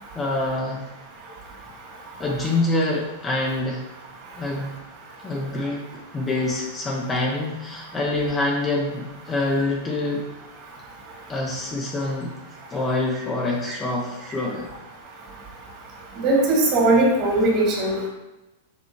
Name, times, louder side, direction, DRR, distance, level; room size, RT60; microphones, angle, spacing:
voice 1, 0.1-0.8 2.2-3.8 4.4-4.7 5.2-5.8 6.1-10.2 11.3-12.3 12.7-14.7, left 2 dB, 15° left, -2 dB, 1.0 m, -25 dB
voice 2, 16.2-18.1, right 2 dB, 35° right, -2 dB, 2.6 m, -19 dB
7.0 x 4.9 x 4.7 m, 0.99 s
supercardioid pair, 155°, 0 cm